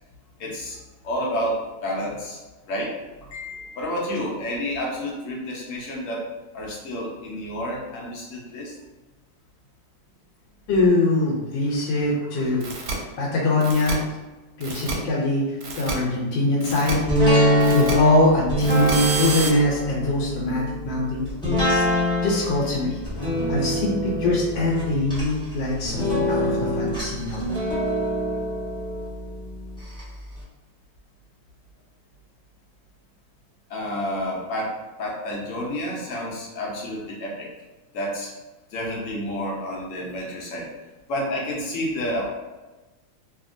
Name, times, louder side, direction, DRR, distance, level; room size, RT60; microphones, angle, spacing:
voice 1, 0.4-2.4 2.7-2.9 3.2-6.2 6.5-8.7 11.6-13.0 33.7-37.5 37.9-38.3 38.7-40.7 41.1-42.3, equal, 60° left, -4 dB, 0.8 m, -30 dB
voice 2, 10.7-12.7 13.2-14.0 14.6-15.5 15.8-17.0 17.7-23.0 23.5-27.5, left 2 dB, 80° left, -3 dB, 1.3 m, -23 dB
sound 1, 12.6-12.9 13.6-13.9 14.6-14.9 15.6-15.9 16.6-16.9 17.6-17.9 18.6-19.5, right 4 dB, 70° right, 1.1 m, -29 dB
sound 2, 17.1-30.0 30.4-30.5, equal, 5° left, 0.6 m, -24 dB
2.8 x 2.6 x 2.5 m, 1.2 s
omnidirectional pair, 2.0 m